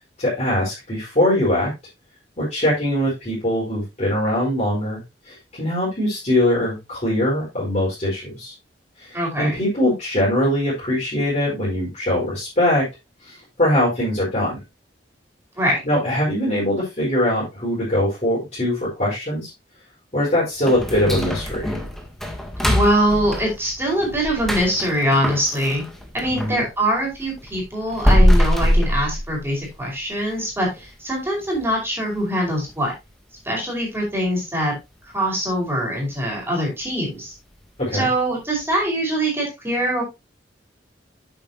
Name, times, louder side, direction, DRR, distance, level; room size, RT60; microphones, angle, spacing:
voice 1, 0.2-1.7 2.4-8.5 9.0-12.9 13.2-14.6 15.8-19.5 20.1-21.7 26.3-26.6 37.8-38.1, left 1 dB, 40° left, -8 dB, 5.0 m, -22 dB
voice 2, 9.1-9.6 15.6-15.8 22.6-25.8 26.1-32.9 33.4-34.7 35.1-37.3 37.9-40.0, equal, 15° right, -3 dB, 5.0 m, -23 dB
sound 1, 20.7-26.6 27.0-29.8 30.2-30.3 30.8-30.9 31.4-31.7 32.0-32.1 32.7-32.8, equal, ahead, 1.7 m, -22 dB
9.2 x 7.9 x 2.9 m, 0.23 s
head